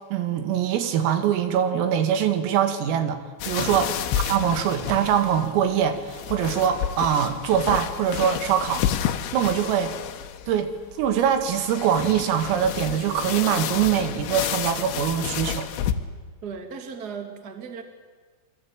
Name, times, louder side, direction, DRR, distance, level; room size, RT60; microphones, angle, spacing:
voice 1, 0.1-3.2 3.4-4.0 4.3-8.8 9.3-9.9 10.5-15.7, right 9 dB, 85° right, 7 dB, 4.6 m, -23 dB
sound 1, 3.4-15.9, left 10 dB, 70° left, 3.2 m, -31 dB
voice 2, 16.4-17.8, right 6 dB, 40° right, 5 dB, 1.5 m, -37 dB
27.0 x 23.0 x 8.9 m, 1.4 s
omnidirectional pair, 5.9 m